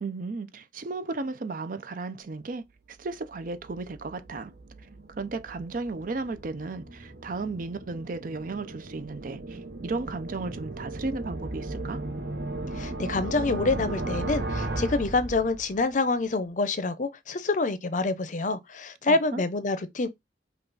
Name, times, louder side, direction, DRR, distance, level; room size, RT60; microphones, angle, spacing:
voice 1, 0.0-2.7 3.0-4.5 5.2-12.0 19.0-19.4, right 3 dB, 50° right, 0.5 m, -34 dB
sound 1, 3.0-15.9, right 2 dB, 65° right, 1.0 m, -36 dB
voice 2, 12.7-20.1, left 3 dB, 45° left, 0.6 m, -27 dB
5.5 x 2.4 x 3.9 m
head